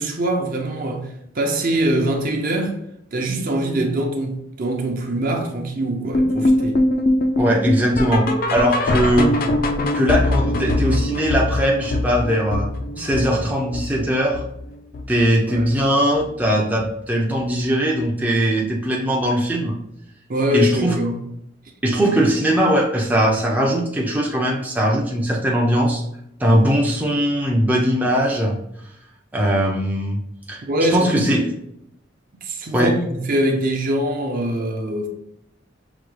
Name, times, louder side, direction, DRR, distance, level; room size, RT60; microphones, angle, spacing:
voice 1, 0.0-2.7 3.1-6.8 7.5-7.6 12.9-13.0 15.5-15.7 20.3-21.2 30.6-31.3 32.4-35.1, right 1 dB, 45° right, 0.7 m, -23 dB
sound 1, 6.1-15.3 15.5-15.9 16.2-16.3 16.8-16.9 17.4-17.5, left 1 dB, 50° left, 0.4 m, -22 dB
voice 2, 7.4-9.4 9.9-12.7 13.0-14.4 15.1-19.7 20.5-21.0 21.8-26.0 26.4-28.6 29.3-30.2 30.5-30.6 30.9-31.4 32.7-32.9, equal, 10° right, 0.5 m, -20 dB
5.8 x 2.2 x 3.2 m
head